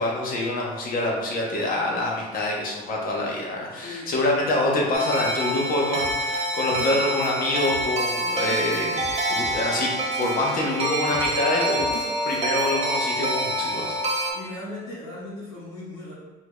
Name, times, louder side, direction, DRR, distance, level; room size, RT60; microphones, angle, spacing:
voice 1, 0.0-11.9 12.2-14.0, left 2 dB, 55° left, -2 dB, 1.0 m, -26 dB
voice 2, 3.7-4.1 14.3-16.1, left 2 dB, 90° left, -12 dB, 1.2 m, -37 dB
sound 1, 4.9-14.3, right 1 dB, 40° right, 0.8 m, -26 dB
sound 2, 5.9-8.1 8.5-10.7 11.1-11.3 11.7-12.8, right 4 dB, 80° right, 0.6 m, -41 dB
4.6 x 2.8 x 2.3 m, 1.2 s
cardioid pair, 110°, 17 cm